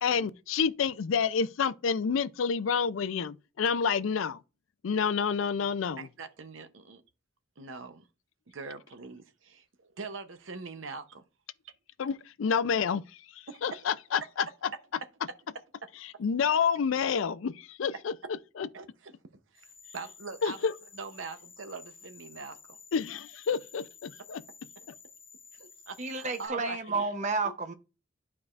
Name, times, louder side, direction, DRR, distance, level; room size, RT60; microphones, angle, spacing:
voice 1, 0.0-4.4 4.8-6.1 12.0-13.0 13.6-14.5 16.2-18.1 18.6-18.7 20.4-20.7 22.9-24.4, left 6 dB, 75° left, 0.4 m, -28 dB
voice 2, 6.0-7.0 7.6-8.0 8.5-9.6 10.0-11.2 13.5-13.8 18.7-19.1 19.5-19.7 19.9-20.6 20.9-22.6 25.5-27.1, right 4 dB, 70° right, 0.7 m, -42 dB
sound 1, 19.6-26.5, left 5 dB, 30° left, 1.2 m, -53 dB
voice 3, 26.0-27.7, right 3 dB, 35° right, 0.7 m, -31 dB
11.5 x 4.7 x 2.4 m
head